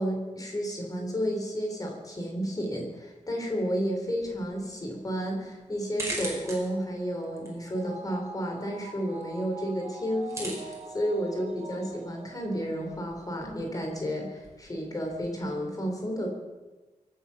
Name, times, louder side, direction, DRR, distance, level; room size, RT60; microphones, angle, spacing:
voice 1, 0.0-16.3, equal, 30° left, 2 dB, 3.7 m, -32 dB
sound 1, 4.1-15.4, right 1 dB, 20° right, 5.2 m, -44 dB
sound 2, 6.7-13.3 13.7-13.8, right 3 dB, 55° right, 2.8 m, -46 dB
24.0 x 9.5 x 6.1 m, 1.2 s
wide cardioid pair, 145°, 13 cm